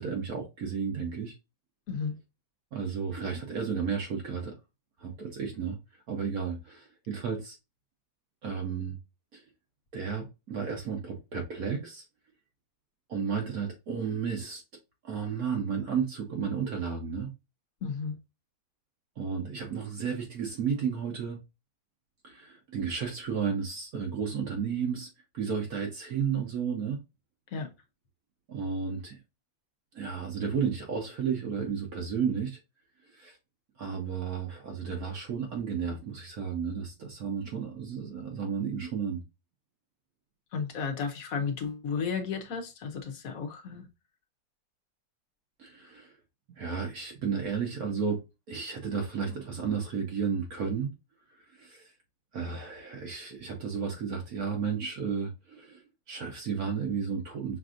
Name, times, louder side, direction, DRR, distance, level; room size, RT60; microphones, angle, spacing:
voice 1, 0.0-1.3 2.7-4.5 5.0-5.8 6.1-7.6 8.4-9.0 9.3-9.4 9.9-12.0 13.1-14.6 15.0-17.3 19.2-21.4 22.2-25.1 25.3-27.0 28.5-29.2 29.9-32.6 33.1-33.4 33.8-39.2 45.6-46.1 46.5-48.2 48.5-50.9 51.5-51.9 52.3-55.8 56.1-57.6, right 6 dB, 60° right, 1.2 m, -33 dB
voice 2, 17.8-18.2 27.5-27.7 40.5-43.9, left 5 dB, 60° left, 1.1 m, -33 dB
6.0 x 2.6 x 2.4 m
omnidirectional pair, 2.0 m